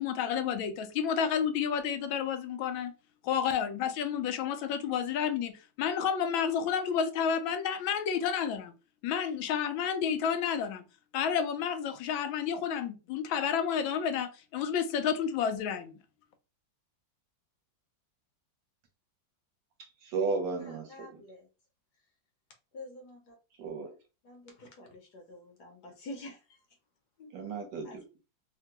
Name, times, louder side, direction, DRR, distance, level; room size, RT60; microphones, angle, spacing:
voice 1, 0.0-2.9 3.2-8.7 9.0-10.8 11.1-15.9, left 7 dB, 85° left, 1.3 m, -30 dB
voice 2, 20.0-21.2 23.6-24.0 27.3-28.0, right 4 dB, 70° right, 1.3 m, -34 dB
voice 3, 20.6-21.5 22.7-23.4 24.2-26.6 27.2-27.3 27.8-28.0, left 2 dB, 65° left, 1.3 m, -47 dB
3.5 x 2.2 x 2.8 m
omnidirectional pair, 2.1 m